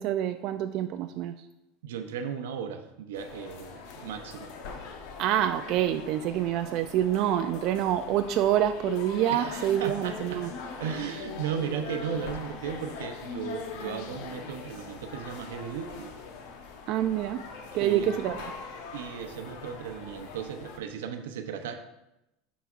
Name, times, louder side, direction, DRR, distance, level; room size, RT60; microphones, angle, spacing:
voice 1, 0.0-1.3 5.2-10.5 16.9-17.4 17.7-18.4, right 11 dB, 55° right, 7 dB, 0.3 m, -27 dB
voice 2, 1.8-4.5 9.3-10.4 10.8-16.1 17.8-18.1 18.9-21.8, right 7 dB, 85° right, 7 dB, 0.7 m, -36 dB
sound 1, 3.1-20.8, left 5 dB, 65° left, 0.9 m, -41 dB
11.5 x 4.1 x 2.5 m, 0.90 s
supercardioid pair, 115°, 0 cm